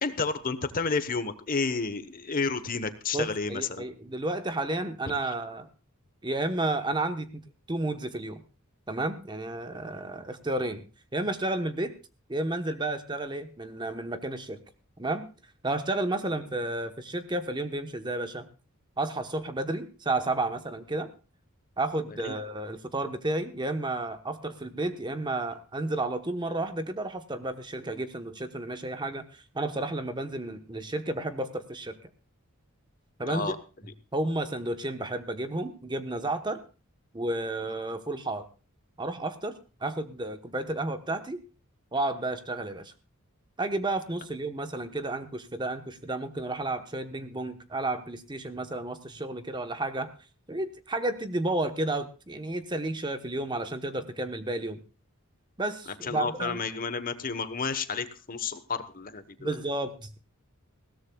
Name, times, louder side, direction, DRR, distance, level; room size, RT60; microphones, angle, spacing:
voice 1, 0.0-3.8 22.2-22.3 33.3-33.6 56.0-59.6, left 4 dB, 40° left, 12 dB, 1.1 m, -31 dB
voice 2, 3.1-5.7 6.2-7.3 7.7-8.4 8.9-10.9 11.1-11.9 12.3-14.6 15.0-15.3 15.6-18.5 19.0-21.1 21.8-31.9 33.2-33.5 34.1-36.6 37.1-38.5 39.0-39.5 39.8-41.4 41.9-42.9 43.6-50.1 50.5-54.8 55.6-56.6 59.4-60.2, right 2 dB, 20° right, 8 dB, 1.1 m, -32 dB
20.5 x 16.5 x 2.3 m, 0.34 s
head